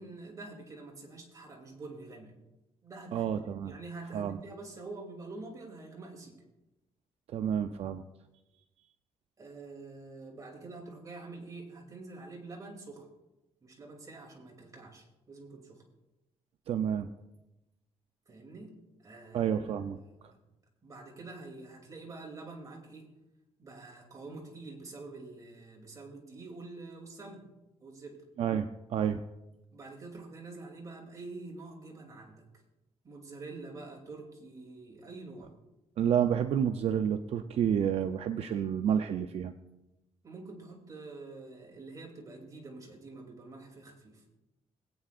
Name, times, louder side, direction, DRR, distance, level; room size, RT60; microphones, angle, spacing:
voice 1, 0.0-2.3 2.8-6.4 9.4-13.1 13.6-15.8 18.3-18.7 19.0-19.6 20.0-20.4 20.8-23.1 23.6-27.5 27.8-28.2 29.7-32.4 33.0-35.5 40.2-44.2, right 3 dB, 30° right, 0 dB, 2.7 m, -46 dB
voice 2, 3.1-3.7 4.1-4.4 7.3-8.0 16.7-17.1 19.3-20.0 28.4-29.2 36.0-39.5, right 8 dB, 60° right, 8 dB, 0.5 m, -29 dB
21.5 x 8.7 x 2.5 m, 0.98 s
cardioid pair, 120°, 11 cm